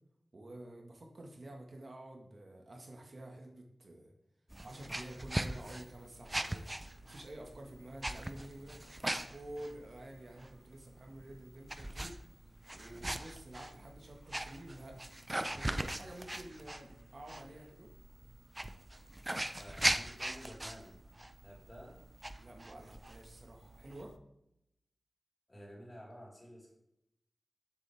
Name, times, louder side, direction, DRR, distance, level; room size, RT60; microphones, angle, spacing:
voice 1, 0.3-4.1 4.6-6.8 7.0-12.1 12.7-15.0 15.5-17.9 22.4-24.2, right 1 dB, 55° right, 1 dB, 1.8 m, -50 dB
sound 1, 4.5-24.2, right 1 dB, 20° right, 0.7 m, -41 dB
voice 2, 19.6-21.0 21.4-22.0 25.5-26.7, equal, 30° left, -3 dB, 4.3 m, -51 dB
13.0 x 7.4 x 3.5 m, 0.80 s
cardioid pair, 50°, 0 cm